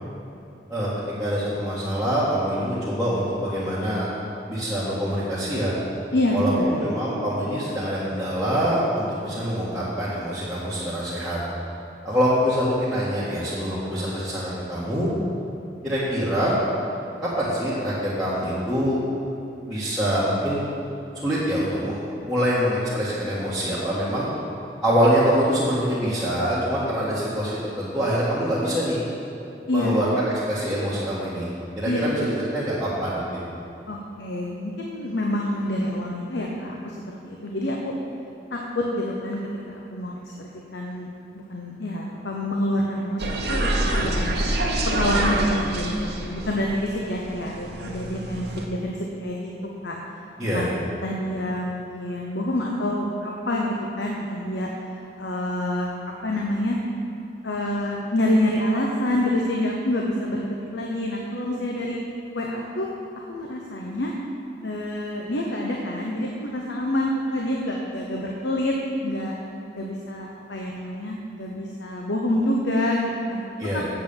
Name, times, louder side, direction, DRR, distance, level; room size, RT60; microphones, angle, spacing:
voice 1, 1.2-4.1 4.5-5.8 6.3-11.4 12.0-15.1 15.8-16.5 17.2-19.0 19.7-20.7 21.2-22.0 22.3-24.3 24.8-29.0 29.7-33.2 50.4-50.7 73.6-73.8, equal, ahead, -13 dB, 1.7 m, -25 dB
voice 2, 6.1-6.8 29.7-30.0 31.8-32.2 33.9-37.9 38.5-39.4 39.7-41.1 41.3-44.4 44.9-49.5 49.8-50.0 50.5-50.7 51.0-55.9 56.2-56.8 57.4-60.4 60.7-62.0 62.3-62.9 63.3-64.1 64.6-68.7 69.0-69.3 69.7-73.4 73.7-73.8, left 1 dB, 75° left, -1 dB, 1.0 m, -27 dB
sound 1, 43.2-48.7, right 1 dB, 65° right, 1.2 m, -26 dB
8.2 x 7.4 x 7.1 m, 2.9 s
head